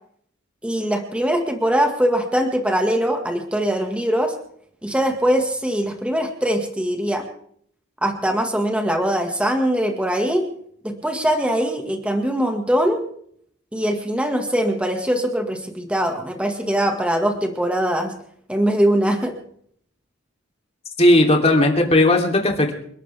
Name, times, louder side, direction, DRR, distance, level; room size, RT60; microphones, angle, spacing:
voice 1, 0.6-4.3 4.8-7.3 8.0-10.4 10.8-13.0 13.7-18.2 18.5-19.4, equal, 5° right, 3 dB, 1.9 m, -22 dB
voice 2, 21.0-22.8, left 1 dB, 30° left, 2 dB, 3.3 m, -16 dB
29.5 x 12.5 x 3.6 m, 0.65 s
head